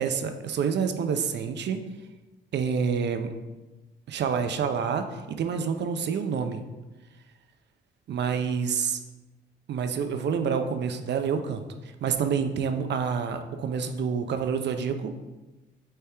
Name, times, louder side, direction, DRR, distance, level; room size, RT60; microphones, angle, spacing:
voice 1, 0.0-1.8 2.5-3.3 4.1-6.6 8.1-9.0 9.7-11.6 12.0-15.1, right 6 dB, 60° right, 8 dB, 0.7 m, -28 dB
8.8 x 3.5 x 3.4 m, 1.1 s
cardioid pair, 90°, 20 cm